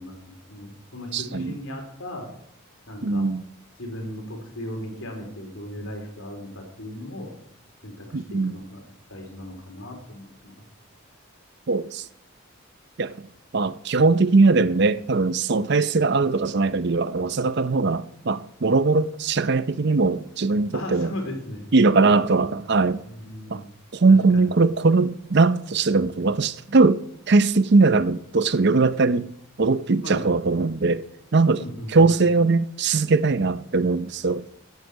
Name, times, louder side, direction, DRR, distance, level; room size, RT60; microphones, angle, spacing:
voice 1, 0.0-2.3 2.9-3.3 3.8-7.3 7.8-10.5 20.7-22.6 23.0-23.7 24.3-24.5 30.0-30.2 31.6-32.2, left 1 dB, 70° left, 4.1 m, -37 dB
voice 2, 1.1-1.6 3.0-3.4 8.1-8.5 11.7-12.1 13.0-13.1 13.5-21.1 21.7-23.0 23.5-23.6 23.9-29.3 29.6-31.0 31.3-31.6 31.9-34.4, right 3 dB, 50° right, 0.6 m, -20 dB
15.5 x 9.7 x 6.3 m
head